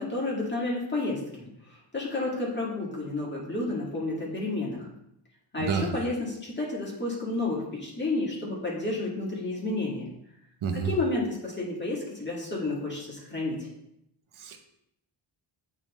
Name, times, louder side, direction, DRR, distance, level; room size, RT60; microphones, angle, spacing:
voice 1, 0.0-4.9 5.5-10.1 10.7-13.7, left 2 dB, 20° left, -5 dB, 2.0 m, -31 dB
voice 2, 10.6-10.9 14.4-14.6, right 6 dB, 80° right, 5 dB, 0.9 m, -29 dB
8.7 x 3.6 x 3.1 m, 0.78 s
wide cardioid pair, 125°, 48 cm